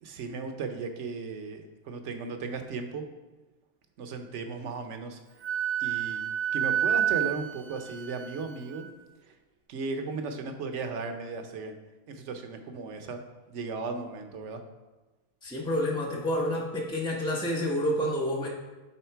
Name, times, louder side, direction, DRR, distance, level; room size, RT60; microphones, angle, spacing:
voice 1, 0.0-3.0 4.0-5.2 5.8-8.9 9.3-9.4 9.7-11.8 12.1-13.2 13.5-14.6, right 4 dB, 60° right, 6 dB, 1.0 m, -36 dB
Wind instrument woodwind instrument, 5.4-8.9, right 10 dB, 85° right, 0.5 m, -29 dB
voice 2, 15.4-18.5, equal, 5° left, -3 dB, 0.4 m, -29 dB
10.0 x 3.7 x 4.5 m, 1.2 s
omnidirectional pair, 1.6 m